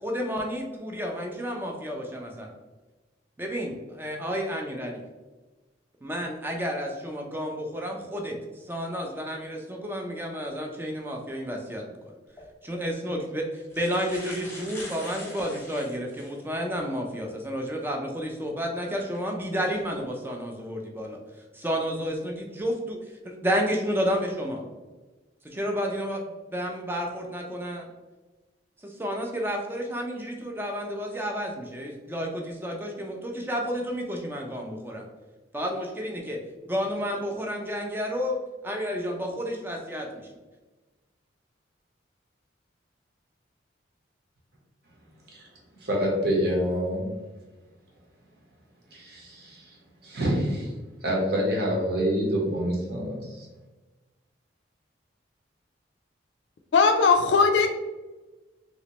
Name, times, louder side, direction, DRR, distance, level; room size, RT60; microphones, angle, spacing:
voice 1, 0.0-2.5 3.4-5.0 6.0-12.1 12.6-21.2 21.5-24.6 25.4-26.2 26.5-27.9 28.8-35.1 35.5-36.4 36.7-40.3, equal, 10° right, 1 dB, 0.4 m, -31 dB
sound 1, 12.3-12.5 13.3-13.4 13.6-16.4 17.0-17.1 18.9-19.2 19.8-20.0, left 1 dB, 15° left, 0.8 m, -43 dB
voice 2, 45.8-47.1 48.9-49.8 50.0-50.7 51.0-53.5, equal, 55° right, -2 dB, 1.0 m, -27 dB
voice 3, 56.7-57.7, left 4 dB, 70° left, 4 dB, 0.4 m, -19 dB
3.1 x 2.9 x 2.9 m, 1.2 s
head